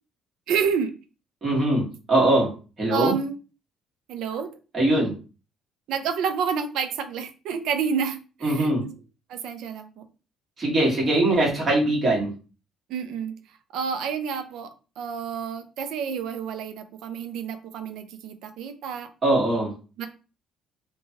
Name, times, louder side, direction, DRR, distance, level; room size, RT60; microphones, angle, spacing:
voice 1, 0.5-0.9 2.9-3.4 4.1-4.5 5.9-8.9 9.3-10.0 12.9-13.3 13.7-14.7 15.0-19.1 20.0-20.1, right 6 dB, 75° right, 8 dB, 0.4 m, -29 dB
voice 2, 1.4-2.5 2.8-3.2 4.7-5.1 8.4-8.8 10.6-12.3 19.2-19.7, right 1 dB, 25° right, -4 dB, 1.3 m, -21 dB
3.1 x 2.2 x 2.7 m, 0.34 s
cardioid pair, 165°, 0 cm